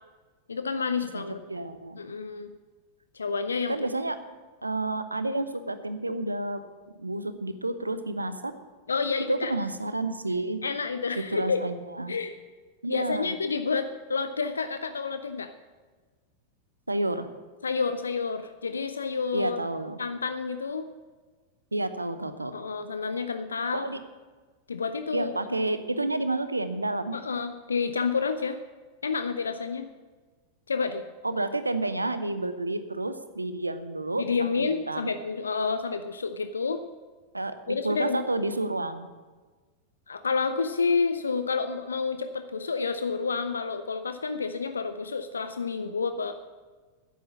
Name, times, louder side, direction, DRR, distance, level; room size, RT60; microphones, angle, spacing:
voice 1, 0.5-1.4 2.0-2.5 3.1-3.8 8.9-9.5 10.6-11.6 12.1-12.3 12.9-15.5 17.6-19.6 20.0-20.9 22.5-23.9 24.7-25.3 27.1-28.6 29.0-29.9 30.7-31.0 34.2-36.8 37.7-38.2 40.1-46.3, left 5 dB, 75° left, 10 dB, 0.5 m, -29 dB
voice 2, 1.1-2.0 3.7-4.2 4.6-6.6 7.0-8.5 9.3-10.6 11.3-12.1 12.8-13.3 16.9-17.3 19.3-20.0 21.7-22.5 23.7-24.0 25.1-27.1 31.2-35.1 37.3-39.1, right 2 dB, 80° right, 12 dB, 0.7 m, -30 dB
10.5 x 8.4 x 8.3 m, 1.4 s
figure-of-eight pair, 90°, 0 cm